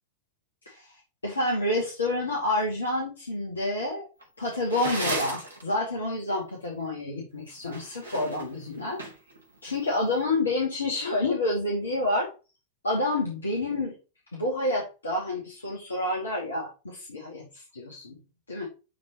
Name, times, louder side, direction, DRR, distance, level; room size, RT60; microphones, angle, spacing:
voice 1, 0.7-4.1 4.4-9.0 9.6-12.3 12.8-13.9 14.3-18.2 18.5-18.7, left 2 dB, 75° left, -1 dB, 2.2 m, -29 dB
sound 1, 4.2-5.6 7.6-9.4, right 2 dB, 80° right, 2.7 m, -33 dB
11.0 x 3.9 x 3.0 m, 0.30 s
figure-of-eight pair, 90°, 0 cm